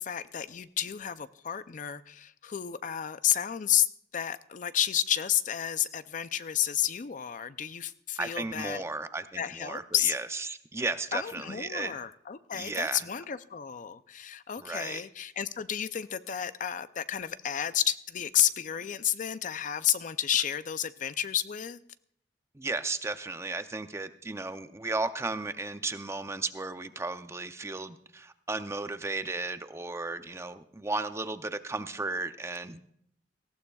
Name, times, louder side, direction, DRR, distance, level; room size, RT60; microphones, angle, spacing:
voice 1, 0.0-3.9 4.1-8.8 9.4-10.2 11.1-21.8, left 10 dB, 50° left, 13 dB, 0.5 m, -31 dB
voice 2, 8.2-12.0 12.5-13.0 14.6-15.0 22.5-32.8, right 3 dB, 15° right, 10 dB, 0.6 m, -34 dB
18.5 x 15.5 x 2.3 m, 0.69 s
head